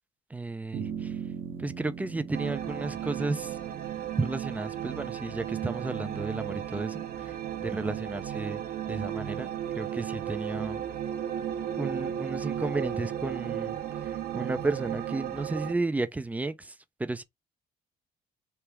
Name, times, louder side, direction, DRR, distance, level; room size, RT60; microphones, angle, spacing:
voice 1, 0.3-1.1 1.6-3.6 4.2-7.0 7.6-8.6 8.9-9.5 9.8-10.8 11.8-13.8 14.3-16.7 17.0-17.2, right 2 dB, 10° right, 0.5 m, -33 dB
sound 1, 0.7-7.3, right 7 dB, 35° right, 0.8 m, -42 dB
sound 2, 2.3-15.7, right 10 dB, 60° right, 0.8 m, -34 dB
3.4 x 2.8 x 4.5 m
cardioid pair, 110°, 17 cm